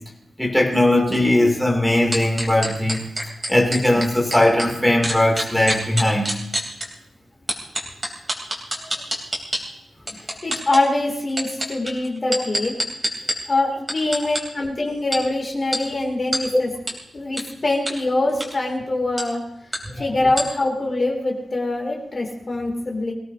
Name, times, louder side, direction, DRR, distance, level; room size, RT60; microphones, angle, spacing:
voice 1, 0.4-3.0 3.5-6.4 12.2-12.4 19.9-20.1, left 1 dB, ahead, -1 dB, 2.8 m, -19 dB
sound 1, 2.1-4.7 5.0-6.8 7.5-9.6 10.1-10.8 11.3-13.3 13.9-14.4 15.1-15.2 15.7-15.8 16.3-16.4 16.9-17.0 17.4-17.5 17.9-18.0 18.3-18.5 19.2-19.3 19.7-19.8 20.4-20.5, right 1 dB, 20° right, 3.4 m, -25 dB
voice 2, 10.1-12.7 13.5-16.7 17.1-19.4 20.0-23.1, left 2 dB, 35° left, 0 dB, 2.8 m, -24 dB
23.0 x 17.0 x 2.8 m, 0.74 s
wide cardioid pair, 120°, 0 cm